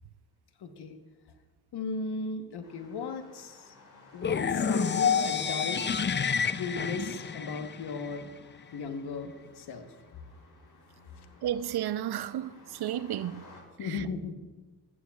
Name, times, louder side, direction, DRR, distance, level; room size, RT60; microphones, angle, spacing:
voice 1, 0.6-0.9 1.7-3.7 4.1-6.0 6.5-8.3 8.7-9.9 13.8-14.3, left 4 dB, 85° left, 1.2 m, -36 dB
sound 1, 2.6-13.6, left 2 dB, 60° left, 3.2 m, -55 dB
sound 2, 4.2-8.2, left 6 dB, 30° left, 0.5 m, -28 dB
voice 2, 11.4-13.4 13.8-14.0, right 11 dB, 75° right, 0.5 m, -33 dB
15.0 x 12.5 x 2.3 m
cardioid pair, 50°, 38 cm